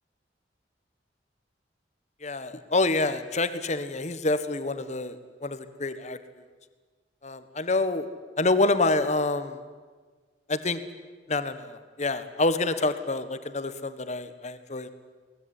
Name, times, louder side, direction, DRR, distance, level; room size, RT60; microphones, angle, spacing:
voice 1, 2.2-6.2 7.2-8.1 8.4-9.6 10.5-10.8 11.3-14.9, left 2 dB, 40° left, 12 dB, 1.5 m, -27 dB
22.0 x 19.5 x 9.9 m, 1.4 s
head